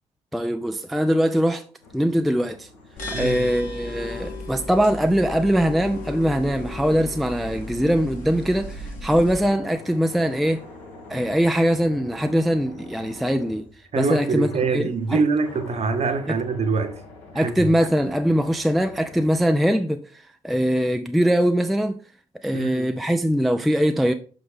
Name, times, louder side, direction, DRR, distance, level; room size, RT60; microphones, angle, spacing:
voice 1, 0.3-1.7 1.9-2.7 3.1-10.6 11.1-13.6 14.0-15.2 16.3-16.4 17.3-22.0 22.4-24.1, equal, ahead, 0.4 m, -22 dB
sound 1, 1.8-19.2, left 3 dB, 70° left, 1.7 m, -45 dB
sound 2, 3.0-9.5, left 2 dB, 50° left, 1.7 m, -35 dB
voice 2, 3.1-3.5 13.9-17.0 17.3-17.5 22.5-22.9, right 4 dB, 40° right, 0.9 m, -24 dB
5.9 x 5.2 x 3.5 m
figure-of-eight pair, 40°, 17 cm